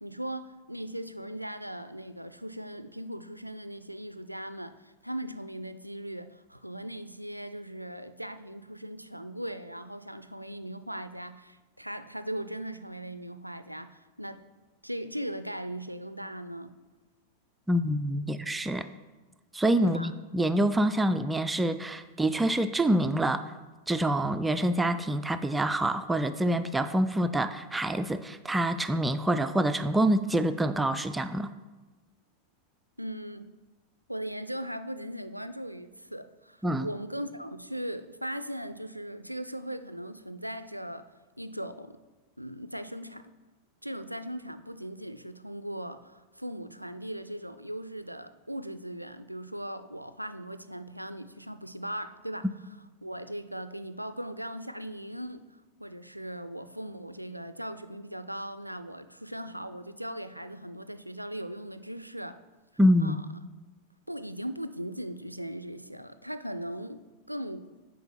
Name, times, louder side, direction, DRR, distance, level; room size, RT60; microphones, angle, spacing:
voice 1, 0.0-14.4 14.8-16.7 19.8-20.1 33.0-33.5 34.1-41.1 41.4-42.0 42.4-43.3 43.8-52.5 53.0-62.4 63.0-63.3 64.1-67.7, right 1 dB, 90° right, 12 dB, 0.3 m, -39 dB
voice 2, 17.7-18.9 19.5-23.5 23.9-31.5 36.6-36.9 62.8-63.2, right 1 dB, 10° right, 10 dB, 0.3 m, -26 dB
6.9 x 4.9 x 5.6 m, 1.2 s
figure-of-eight pair, 90°, 0 cm